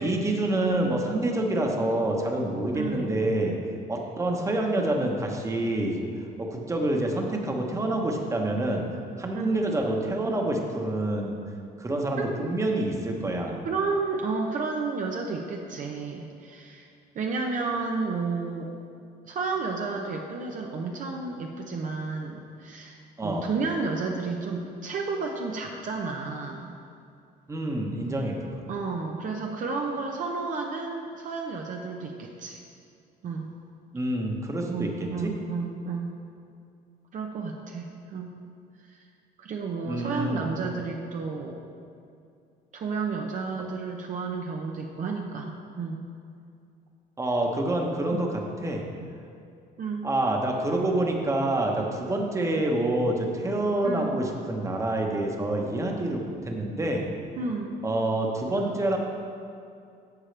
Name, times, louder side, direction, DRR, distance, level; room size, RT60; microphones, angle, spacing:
voice 1, 0.0-3.6 3.9-6.1 6.4-8.8 9.2-11.4 11.8-13.6 23.2-23.4 27.5-28.7 33.9-35.3 39.8-40.5 43.6-43.7 47.2-48.8 50.0-57.1 57.8-59.0, right 1 dB, 15° right, 1 dB, 1.2 m, -27 dB
voice 2, 2.7-3.2 3.5-3.6 9.3-9.6 12.2-12.6 13.6-16.9 17.1-18.7 19.2-26.7 28.7-32.6 33.2-33.5 34.7-36.1 37.1-38.3 38.8-39.1 39.4-41.7 42.7-46.0 48.1-48.2 49.8-50.1 53.8-54.2 57.4-57.8 58.6-58.7, right 4 dB, 50° right, 1 dB, 0.8 m, -32 dB
11.5 x 7.3 x 3.4 m, 2.4 s
cardioid pair, 110°, 17 cm